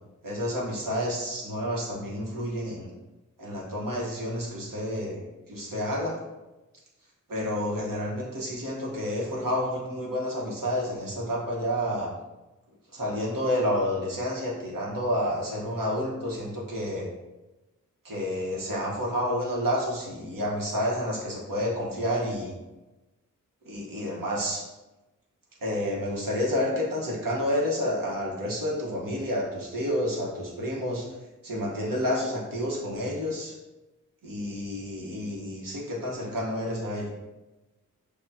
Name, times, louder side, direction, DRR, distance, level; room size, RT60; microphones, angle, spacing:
voice 1, 0.2-2.9 3.4-5.2 5.5-6.2 7.3-12.1 12.9-17.1 18.0-22.5 23.6-24.6 25.6-31.1 31.4-33.5 34.2-37.1, equal, 90° right, -3 dB, 1.2 m, -29 dB
6.8 x 2.4 x 2.7 m, 1.1 s
wide cardioid pair, 70°, 32 cm